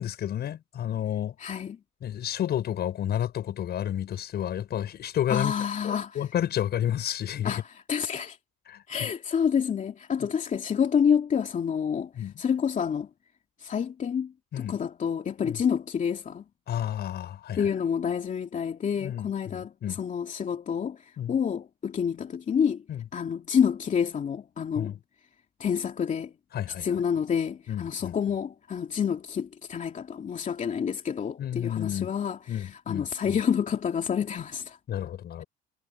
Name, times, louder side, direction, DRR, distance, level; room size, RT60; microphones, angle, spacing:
voice 1, 0.0-1.5 2.0-5.6 5.8-7.6 8.7-8.8 12.2-12.3 14.5-14.8 15.4-15.6 16.7-17.7 19.0-20.0 21.2-21.3 22.9-23.0 24.7-25.0 26.5-27.0 27.7-28.2 31.4-32.1 32.5-33.4 34.9-35.5, left 10 dB, 55° left, 6.5 m, -31 dB
voice 2, 1.4-1.8 5.3-6.3 7.4-8.4 8.9-12.1 12.4-13.1 13.6-16.4 17.5-22.8 23.1-24.9 25.6-26.3 26.7-34.8, left 7 dB, 40° left, 2.6 m, -28 dB
supercardioid pair, 85°, 20 cm